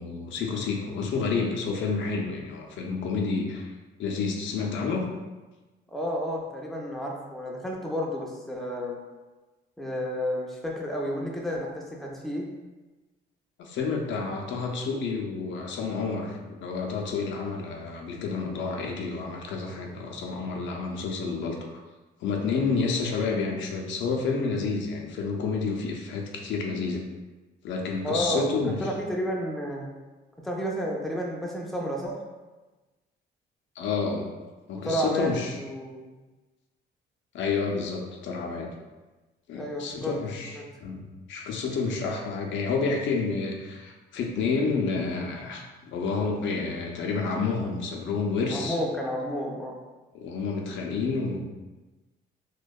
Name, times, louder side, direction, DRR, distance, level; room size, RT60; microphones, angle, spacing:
voice 1, 0.0-3.7 4.0-5.1 13.6-21.6 22.2-27.0 27.6-28.8 33.8-34.3 34.7-35.6 37.3-38.7 39.5-48.8 50.1-51.4, left 4 dB, 70° left, 1 dB, 0.5 m, -29 dB
voice 2, 5.9-9.0 9.8-12.5 28.0-29.9 30.4-32.2 34.8-36.1 39.6-40.2 40.5-40.6 48.5-49.8, equal, ahead, -2 dB, 0.4 m, -31 dB
2.6 x 2.2 x 2.2 m, 1.2 s
cardioid pair, 90°, 20 cm